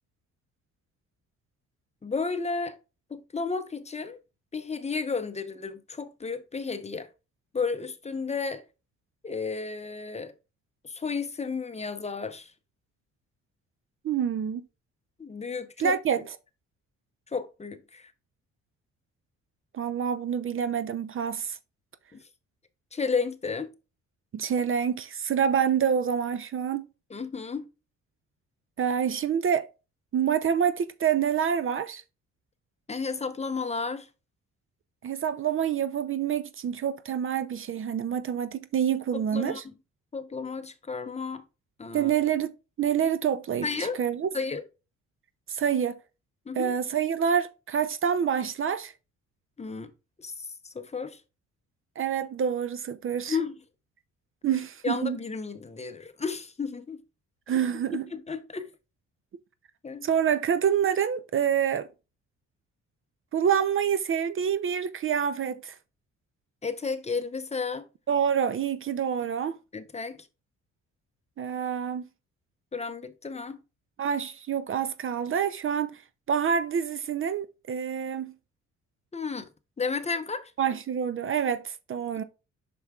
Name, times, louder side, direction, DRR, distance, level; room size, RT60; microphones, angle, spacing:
voice 1, 2.0-2.8 3.1-4.2 4.5-7.1 7.5-8.6 9.2-10.3 10.8-12.5 15.2-16.0 17.3-18.1 22.1-22.2 22.9-23.7 27.1-27.7 32.9-34.1 39.1-39.6 40.1-41.4 41.8-42.1 43.6-44.0 44.3-44.6 46.5-46.7 49.6-49.9 50.2-51.2 53.3-53.6 54.8-57.0 58.1-58.7 59.8-60.0 66.6-67.9 69.7-70.3 72.7-73.6 79.1-79.5 79.8-80.5, left 4 dB, 20° left, 0.7 m, -32 dB
voice 2, 14.0-14.6 15.8-16.2 19.7-21.6 24.3-26.9 28.8-29.7 30.1-32.0 35.0-39.6 41.9-42.5 42.8-44.3 45.5-46.0 46.5-48.9 52.0-53.4 54.4-55.2 57.5-58.0 60.0-61.9 63.3-65.7 68.1-69.6 71.4-72.0 74.0-75.9 76.3-78.3 80.6-82.2, right 8 dB, 45° right, 0.5 m, -27 dB
7.8 x 6.0 x 2.3 m
cardioid pair, 90°, 30 cm